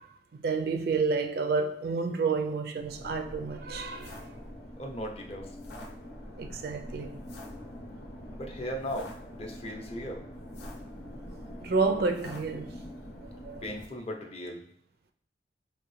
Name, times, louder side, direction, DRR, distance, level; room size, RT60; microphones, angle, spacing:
voice 1, 0.0-4.2 6.4-7.2 11.6-12.7 13.4-13.6, right 4 dB, 60° right, 0.4 m, -30 dB
sound 1, 2.8-13.9, left 1 dB, 80° left, 0.8 m, -44 dB
voice 2, 4.8-5.5 8.4-10.2 13.6-14.6, equal, 35° left, 0.6 m, -37 dB
4.9 x 2.7 x 3.1 m
head